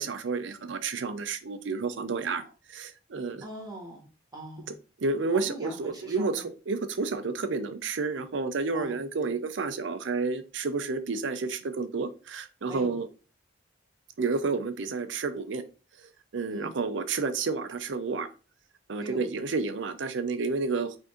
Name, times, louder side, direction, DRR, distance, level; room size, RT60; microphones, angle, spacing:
voice 1, 0.0-2.4 2.7-3.4 5.0-13.1 14.2-15.6 16.3-18.3 18.9-21.0, right 4 dB, 75° right, 10 dB, 0.5 m, -30 dB
voice 2, 3.4-4.7 5.3-6.5 8.7-8.9 9.2-9.4 12.7-12.9 16.5-16.8 18.9-19.2, right 1 dB, 20° right, -1 dB, 1.7 m, -42 dB
5.1 x 2.6 x 3.7 m, 0.34 s
head